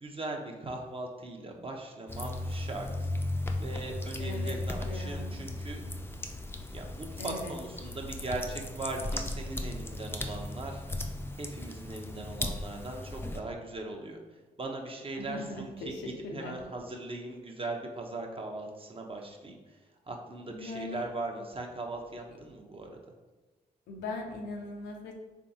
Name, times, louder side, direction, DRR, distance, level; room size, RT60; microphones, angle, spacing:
voice 1, 0.0-3.1 3.6-5.8 6.7-10.8 11.3-14.2 14.6-19.8 20.1-23.0, right 2 dB, 30° right, 1 dB, 0.7 m, -39 dB
sound 1, 2.1-13.4, left 2 dB, 15° left, 0.5 m, -36 dB
voice 2, 4.2-5.4 7.2-7.6 15.2-16.6 20.5-21.0 23.9-25.1, left 2 dB, 85° left, 2 dB, 0.6 m, -40 dB
3.5 x 3.4 x 2.8 m, 1.2 s
supercardioid pair, 45°, 17 cm